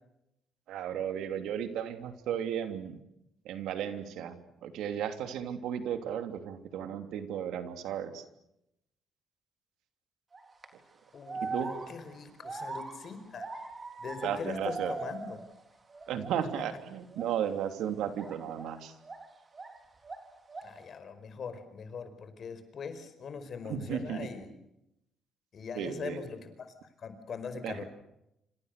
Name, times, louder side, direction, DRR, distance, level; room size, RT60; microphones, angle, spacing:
voice 1, 0.7-3.0 3.4-8.2 11.3-11.7 14.2-14.9 16.1-18.9 23.6-24.3 25.8-26.2 27.6-27.8, right 9 dB, 80° right, 8 dB, 3.0 m, -35 dB
sound 1, 10.3-10.7 11.3-15.6 15.9-16.7 17.1-17.3 18.1-19.8 20.0-20.8, right 3 dB, 30° right, 4.0 m, -41 dB
voice 2, 11.1-13.5 14.0-15.4 20.6-24.5 25.5-27.8, left 6 dB, 50° left, 9 dB, 5.1 m, -41 dB
27.5 x 26.5 x 6.8 m, 0.83 s
cardioid pair, 100°, 0 cm